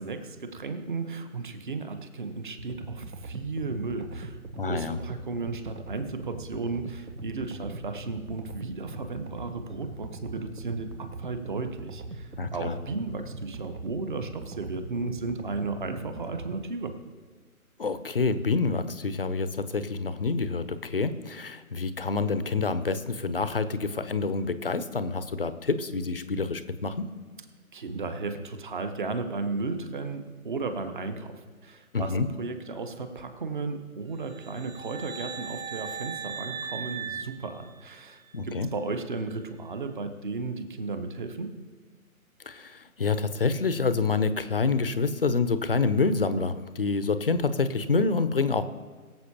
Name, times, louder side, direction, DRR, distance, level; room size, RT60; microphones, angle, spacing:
voice 1, 0.0-16.9 27.7-41.5, right 3 dB, 35° right, 8 dB, 1.0 m, -34 dB
sound 1, 2.6-16.6, right 2 dB, 90° right, 1.1 m, -41 dB
voice 2, 4.6-5.0 12.4-12.7 17.8-27.1 31.9-32.3 38.3-38.7 42.5-48.6, left 4 dB, 40° left, 12 dB, 0.6 m, -27 dB
sound 2, 34.2-38.3, right 7 dB, 65° right, 1.1 m, -38 dB
22.5 x 7.6 x 2.9 m, 1.5 s
figure-of-eight pair, 150°, 44 cm